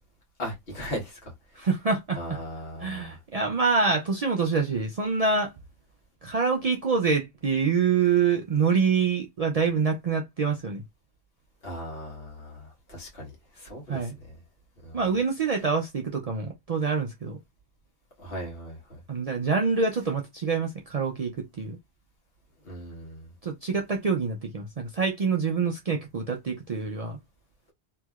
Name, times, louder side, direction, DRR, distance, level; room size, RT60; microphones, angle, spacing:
voice 1, 0.4-1.6 2.1-3.2 11.6-14.1 14.8-15.0 18.2-19.0 22.6-23.3, equal, 65° left, 1.4 m, -38 dB
voice 2, 1.6-2.4 2.8-5.5 6.2-10.8 13.9-14.2 14.9-17.4 19.1-21.8 23.4-27.2, right 5 dB, 50° right, 0.5 m, -26 dB
3.0 x 2.7 x 2.3 m
omnidirectional pair, 1.1 m